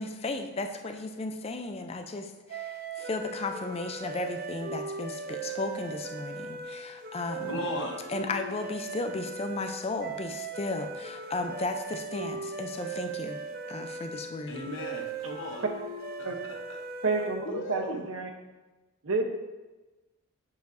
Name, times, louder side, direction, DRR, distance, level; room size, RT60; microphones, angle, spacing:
voice 1, 0.0-7.6 8.1-13.4 13.7-14.5, left 2 dB, 25° left, 6 dB, 0.4 m, -35 dB
sound 1, 2.5-17.6, right 4 dB, 40° right, 0.4 m, -39 dB
voice 2, 7.5-8.0 14.5-15.6 16.4-16.8 17.5-18.0, left 2 dB, 55° left, 1 dB, 1.0 m, -36 dB
voice 3, 17.0-18.3 19.0-19.2, right 3 dB, 60° right, 4 dB, 0.8 m, -29 dB
8.0 x 6.7 x 2.6 m, 1.1 s
head